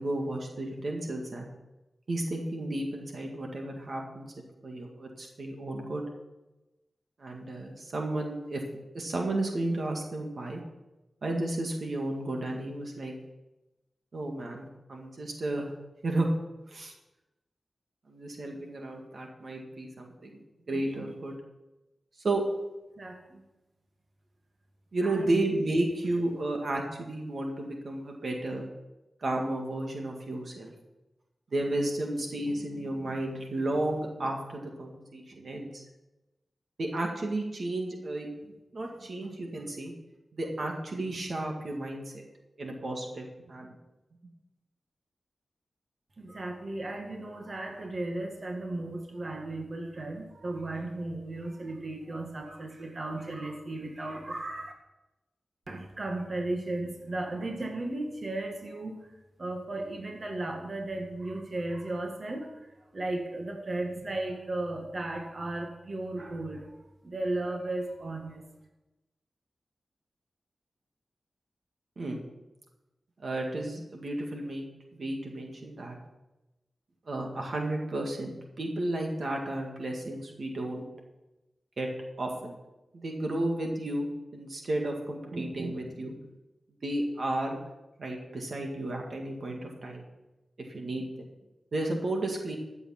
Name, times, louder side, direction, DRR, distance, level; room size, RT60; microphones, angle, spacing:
voice 1, 0.0-1.5 2.1-4.3 4.6-6.1 7.2-8.6 8.9-10.6 11.2-13.1 14.1-15.7 16.0-16.3 16.7-16.9 18.1-21.4 22.2-22.4 24.9-28.7 29.2-30.7 31.5-35.8 36.8-38.3 38.7-39.9 40.3-42.2 42.6-43.8 72.0-72.2 73.2-74.6 74.9-76.0 77.1-80.8 81.8-81.9 82.2-82.6 82.9-84.1 84.3-86.1 86.8-87.6 88.0-90.0 90.7-91.1 91.7-92.6, right 2 dB, 60° right, 1 dB, 1.9 m, -33 dB
voice 2, 23.0-23.4 25.0-25.3 46.2-54.7 55.7-58.9 59.4-62.5 62.9-66.7 67.0-68.4, right 2 dB, 45° right, 2 dB, 1.9 m, -35 dB
14.5 x 7.2 x 5.8 m, 1.0 s
wide cardioid pair, 95°, 0 cm